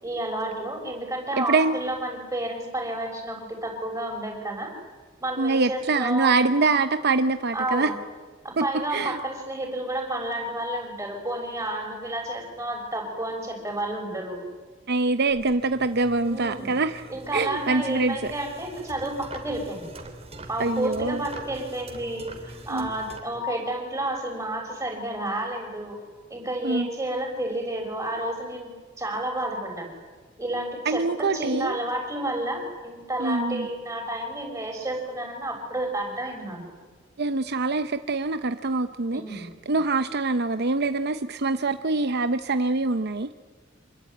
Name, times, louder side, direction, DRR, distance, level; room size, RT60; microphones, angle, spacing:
voice 1, 0.0-4.7 5.2-6.4 7.5-7.9 8.4-14.4 16.2-16.7 17.1-19.9 20.5-26.0 26.3-28.7 29.0-29.9 30.4-36.6 39.1-39.5, right 1 dB, 15° right, 1 dB, 6.5 m, -31 dB
voice 2, 1.4-1.8 5.4-7.9 8.6-8.7 8.9-9.2 14.9-17.0 17.3-18.3 20.6-21.2 22.7-22.9 26.6-26.9 30.8-31.8 33.2-33.7 37.2-43.3, right 3 dB, 55° right, 10 dB, 0.8 m, -24 dB
sound 1, 15.3-23.2, right 2 dB, 30° right, 3.0 m, -44 dB
26.5 x 21.5 x 9.2 m, 1.5 s
head